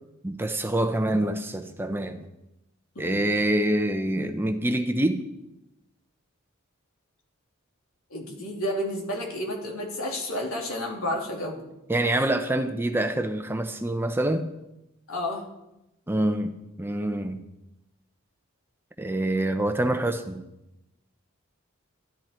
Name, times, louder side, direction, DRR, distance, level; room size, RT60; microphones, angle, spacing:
voice 1, 0.2-2.3 3.0-5.2 11.9-14.5 16.1-17.4 19.0-20.4, right 1 dB, 10° right, 7 dB, 0.7 m, -26 dB
voice 2, 8.1-11.7 15.1-15.5, left 1 dB, 75° left, 0 dB, 3.0 m, -31 dB
13.5 x 12.0 x 4.4 m, 0.91 s
head